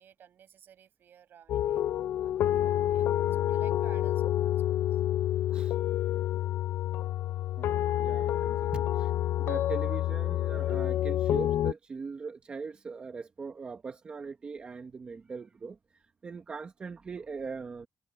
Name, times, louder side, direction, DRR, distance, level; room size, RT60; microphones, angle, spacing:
voice 1, 0.0-5.0 8.5-8.8, right 9 dB, 60° right, 7.1 m, -56 dB
sound 1, 1.5-11.7, left 12 dB, 80° left, 0.4 m, -28 dB
voice 2, 7.6-9.1 9.4-17.9, right 5 dB, 30° right, 1.1 m, -41 dB
cardioid pair, 155°, 4 cm